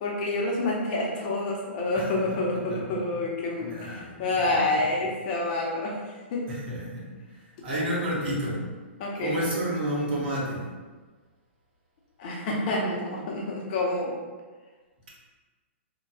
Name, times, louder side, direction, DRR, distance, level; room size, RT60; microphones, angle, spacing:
voice 1, 0.0-6.0 6.3-6.5 9.0-9.4 12.2-14.1, left 2 dB, 45° left, -2 dB, 0.9 m, -28 dB
voice 2, 1.9-3.1 3.5-4.9 6.5-8.7 9.2-10.7, right 1 dB, 55° right, -5 dB, 1.3 m, -32 dB
4.0 x 3.0 x 2.3 m, 1.3 s
figure-of-eight pair, 115°, 7 cm